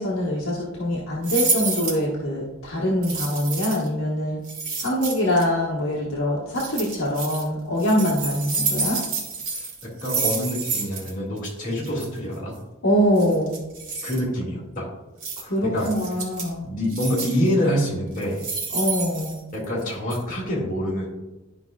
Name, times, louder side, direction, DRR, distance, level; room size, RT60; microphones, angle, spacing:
voice 1, 0.0-4.4 4.8-9.0 12.8-13.6 15.4-16.6 18.7-19.4, equal, 60° left, -5 dB, 1.2 m, -24 dB
sound 1, 1.2-2.0 3.0-3.9 4.4-5.4 6.5-7.4 7.8-11.1 11.4-11.5 11.8-12.1 13.2-14.2 15.2-15.4 15.8-16.5 16.9-17.5 18.1-19.8 20.1-20.2, right 4 dB, 80° right, 1.5 m, -29 dB
voice 2, 9.5-12.6 14.0-14.9 15.7-15.9 16.6-18.4 19.5-21.1, equal, 35° left, -4 dB, 2.1 m, -26 dB
11.5 x 5.0 x 2.3 m, 1.0 s
head